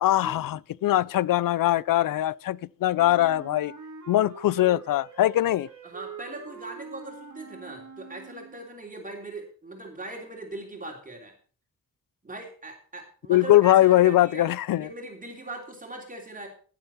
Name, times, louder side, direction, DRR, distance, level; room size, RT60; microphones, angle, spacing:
voice 1, 0.0-3.7 4.1-5.7 13.3-14.9, left 14 dB, 85° left, 0.5 m, -21 dB
Wind instrument woodwind instrument, 2.9-8.7, right 6 dB, 65° right, 2.7 m, -44 dB
voice 2, 5.8-11.3 12.2-14.5 14.8-16.5, right 2 dB, 25° right, 3.3 m, -40 dB
16.5 x 7.3 x 4.4 m
wide cardioid pair, 110°, 32 cm